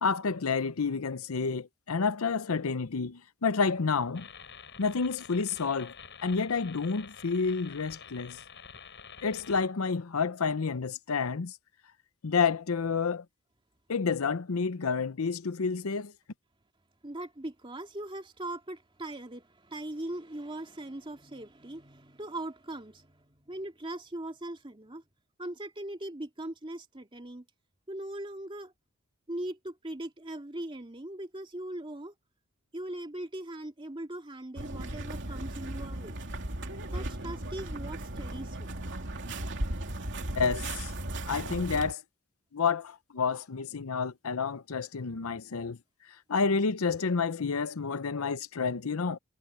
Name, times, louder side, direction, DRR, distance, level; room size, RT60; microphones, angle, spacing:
voice 1, 0.0-4.3 4.8-5.9 6.2-8.4 9.2-11.6 12.2-13.2 13.9-16.1 40.4-40.9 41.2-42.0 42.5-45.8 46.3-49.2, left 5 dB, 75° left, 0.7 m, -29 dB
sound 1, 4.1-9.7, left 7 dB, 55° left, 7.3 m, -48 dB
voice 2, 17.0-25.0 25.4-27.5 27.9-28.7 29.3-32.1 32.7-36.2 36.9-38.7, right 1 dB, 25° right, 2.2 m, -40 dB
sound 2, 34.6-41.9, right 1 dB, 60° right, 2.9 m, -36 dB
head